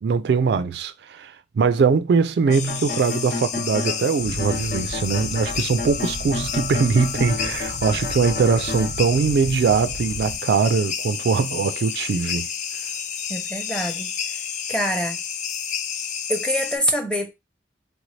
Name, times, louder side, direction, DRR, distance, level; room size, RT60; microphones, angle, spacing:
voice 1, 0.0-12.5, right 5 dB, 70° right, 0.3 m, -21 dB
sound 1, 2.5-4.1 4.4-8.9, left 3 dB, 60° left, 1.0 m, -31 dB
sound 2, 2.5-16.8, left 7 dB, 45° left, 0.4 m, -30 dB
sound 3, 4.2-10.4, right 1 dB, 85° left, 1.2 m, -36 dB
voice 2, 13.3-15.2 16.3-17.3, equal, 5° left, 0.7 m, -26 dB
3.5 x 2.6 x 3.1 m
head